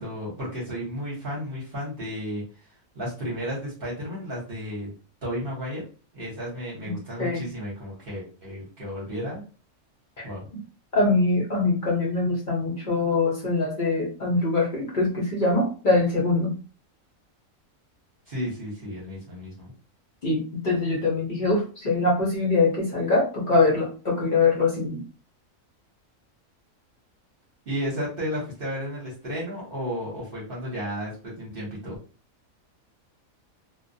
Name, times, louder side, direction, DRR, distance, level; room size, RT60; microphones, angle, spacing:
voice 1, 0.0-2.4 2.9-4.9 5.2-5.8 6.1-9.4 10.2-10.4 18.3-19.7 27.7-32.0, equal, 45° right, -5 dB, 0.9 m, -33 dB
voice 2, 10.9-16.5 20.2-25.0, left 3 dB, 45° left, -3 dB, 0.7 m, -23 dB
2.3 x 2.1 x 2.6 m, 0.37 s
omnidirectional pair, 1.5 m